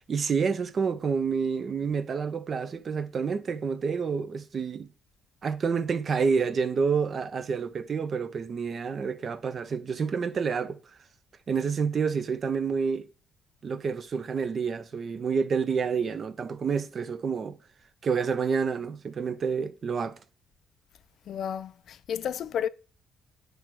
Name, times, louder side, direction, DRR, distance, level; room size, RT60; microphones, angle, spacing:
voice 1, 0.1-4.9 5.4-10.8 11.5-13.1 13.6-17.6 18.0-20.2, right 5 dB, 40° right, 0.7 m, -28 dB
voice 2, 21.3-22.7, left 8 dB, 65° left, 0.4 m, -32 dB
9.3 x 3.4 x 6.0 m
cardioid pair, 130°, 0 cm